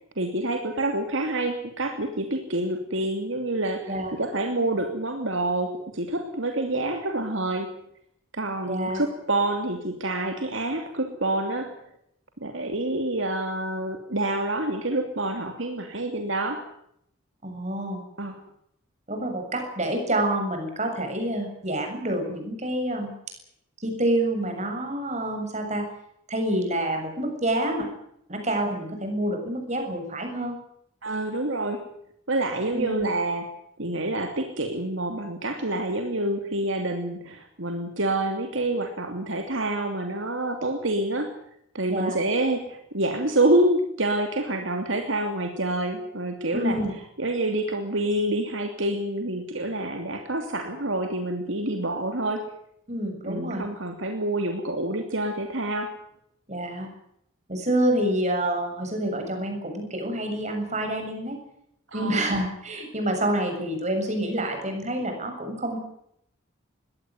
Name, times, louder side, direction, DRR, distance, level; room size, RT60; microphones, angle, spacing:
voice 1, 0.2-7.7 8.3-11.7 12.4-16.6 18.2-18.4 31.0-31.8 32.3-33.5 33.8-41.3 41.7-46.8 47.2-52.4 53.2-55.9 61.9-62.2, right 1 dB, 70° right, 5 dB, 2.8 m, -27 dB
voice 2, 8.6-9.0 17.4-18.0 19.1-23.1 23.8-25.9 26.3-27.9 28.3-30.6 32.7-33.1 41.9-42.2 46.5-46.9 52.9-53.7 56.5-56.9 57.5-61.4 61.9-65.8, right 1 dB, 35° right, 4 dB, 7.4 m, -27 dB
21.5 x 17.5 x 9.7 m, 0.74 s
head